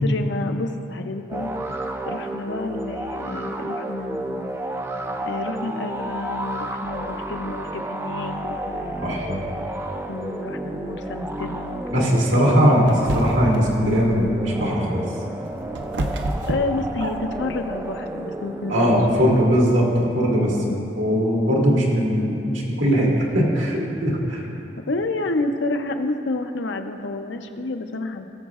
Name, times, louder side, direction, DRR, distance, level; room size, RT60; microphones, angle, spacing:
voice 1, 0.0-1.5 2.1-4.6 5.3-9.3 10.1-13.0 16.5-18.9 20.3-20.8 24.9-28.3, left 2 dB, 70° left, 6 dB, 0.6 m, -29 dB
sound 1, 1.3-19.7, right 1 dB, 15° right, 0.3 m, -31 dB
voice 2, 9.0-9.4 11.9-12.9 13.1-15.0 18.7-20.5 21.0-24.4, equal, 85° right, -3 dB, 1.9 m, -20 dB
sound 2, 12.9-13.6 15.2-17.5, right 1 dB, 65° right, 0.6 m, -28 dB
18.5 x 7.1 x 2.4 m, 2.8 s
head